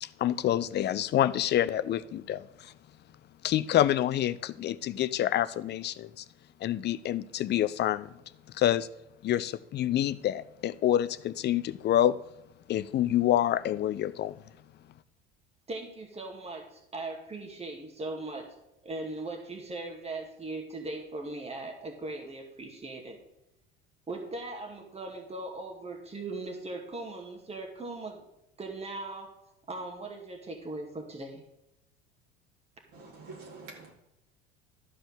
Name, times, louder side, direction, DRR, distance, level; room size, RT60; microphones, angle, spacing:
voice 1, 0.0-2.7 3.4-6.2 6.6-8.1 8.5-8.9 9.2-12.2 12.7-14.4, left 12 dB, 35° left, 15 dB, 0.6 m, -27 dB
voice 2, 15.7-18.5 18.8-23.2 24.1-28.2 28.6-29.3 29.7-31.4, right 2 dB, 20° right, 2 dB, 2.5 m, -39 dB
voice 3, 32.9-33.9, right 3 dB, 55° right, -2 dB, 3.7 m, -46 dB
13.0 x 5.2 x 6.6 m, 0.89 s
figure-of-eight pair, 65°, 32 cm